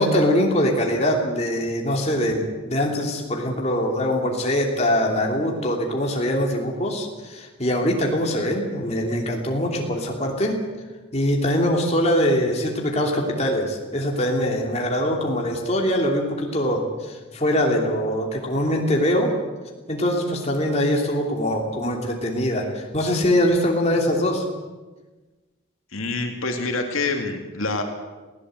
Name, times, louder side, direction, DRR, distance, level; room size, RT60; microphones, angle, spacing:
voice 1, 0.0-10.5 11.1-19.3 19.9-24.4, equal, 30° left, 0 dB, 2.9 m, -23 dB
voice 2, 25.9-27.8, left 3 dB, 90° left, 4 dB, 2.5 m, -26 dB
20.0 x 16.5 x 7.9 m, 1.3 s
head